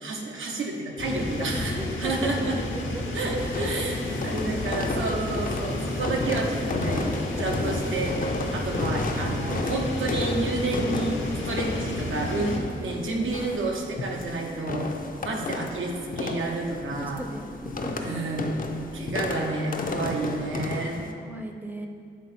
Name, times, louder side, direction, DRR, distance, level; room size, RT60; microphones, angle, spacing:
voice 1, 0.0-2.6 3.1-7.0 7.4-8.3 8.5-11.2 11.5-14.9 15.2-17.2 18.0-18.6 18.9-21.1, right 2 dB, 85° right, 0 dB, 0.8 m, -30 dB
sound 1, 1.0-12.6, left 1 dB, 75° left, 0.9 m, -31 dB
sound 2, 1.0-20.5, left 1 dB, 60° right, 1.3 m, -44 dB
voice 2, 1.1-2.3 2.9-3.0 3.6-4.0 12.5-12.9 17.0-18.0 21.2-21.9, equal, 10° right, 3 dB, 0.6 m, -38 dB
sound 3, 3.4-21.1, left 3 dB, 45° left, 0.5 m, -33 dB
7.5 x 3.7 x 4.2 m, 2.3 s
wide cardioid pair, 85°, 20 cm